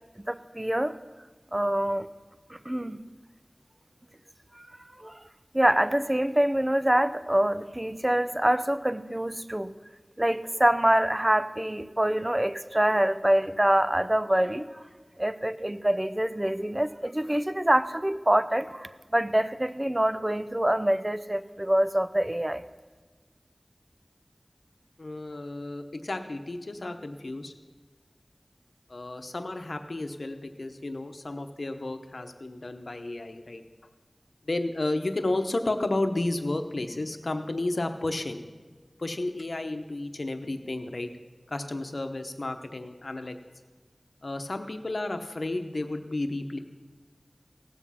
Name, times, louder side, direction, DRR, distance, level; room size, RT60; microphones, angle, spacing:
voice 1, 0.3-0.9 1.5-2.1 2.7-3.0 5.0-5.2 5.5-9.7 10.2-14.7 15.2-22.6, right 1 dB, 25° right, 12 dB, 0.6 m, -25 dB
voice 2, 25.0-27.5 28.9-33.6 34.5-38.4 39.0-41.1 41.5-43.4 44.2-46.6, left 2 dB, 75° left, 7 dB, 0.9 m, -32 dB
17.5 x 7.3 x 5.7 m, 1.4 s
wide cardioid pair, 45°, 0 cm